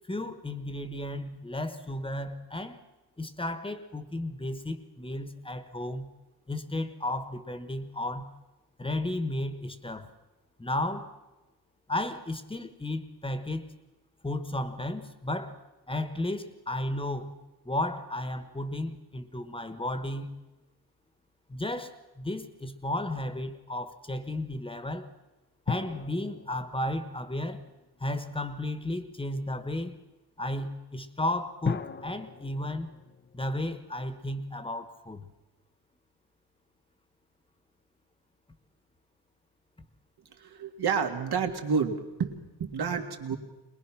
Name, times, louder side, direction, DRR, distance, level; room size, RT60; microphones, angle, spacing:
voice 1, 0.1-2.8 3.2-6.1 6.5-8.3 8.8-10.1 10.6-11.1 11.9-13.7 14.2-15.6 15.9-17.3 17.6-20.4 21.5-25.1 25.7-27.6 28.0-30.0 30.4-32.9 33.3-35.3, left 1 dB, 15° left, 10 dB, 1.2 m, -33 dB
sound 1, 25.7-28.3 31.6-34.3 34.5-34.6, left 5 dB, 30° left, 0.6 m, -38 dB
voice 2, 40.4-43.4, right 6 dB, 70° right, 5 dB, 2.1 m, -30 dB
22.0 x 21.0 x 6.1 m, 1.1 s
wide cardioid pair, 160°, 40 cm